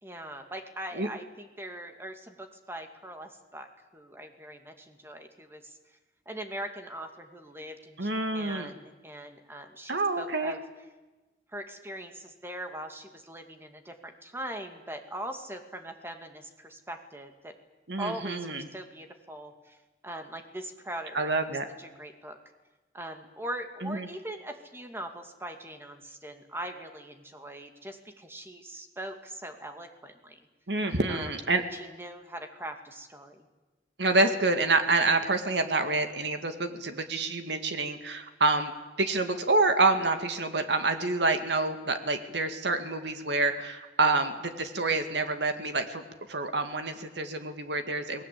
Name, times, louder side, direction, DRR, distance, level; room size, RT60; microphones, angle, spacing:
voice 1, 0.0-3.7 3.9-5.7 6.3-10.6 11.5-17.5 18.0-19.8 20.0-22.4 22.9-30.4 31.1-33.5, right 1 dB, 15° right, 5 dB, 2.4 m, -41 dB
voice 2, 8.0-8.7 9.9-10.5 17.9-18.6 21.1-21.7 23.8-24.1 30.7-31.6 34.0-38.7 39.0-46.0 46.3-48.2, right 3 dB, 75° right, 7 dB, 2.1 m, -27 dB
28.5 x 20.5 x 8.6 m, 1.2 s
head